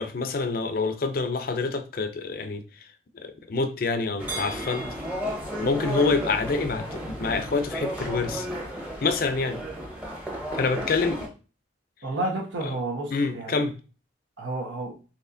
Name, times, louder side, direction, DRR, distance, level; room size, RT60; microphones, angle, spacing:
voice 1, 0.0-2.6 3.1-4.9 5.6-8.5 9.0-9.6 10.5-11.3 12.6-12.7 13.1-13.7, left 4 dB, 50° left, 0.5 m, -27 dB
sound 1, 4.2-11.3, right 1 dB, 10° right, 0.8 m, -33 dB
voice 2, 12.0-13.6 14.4-14.9, right 2 dB, 85° right, 1.2 m, -31 dB
4.2 x 2.9 x 2.6 m
head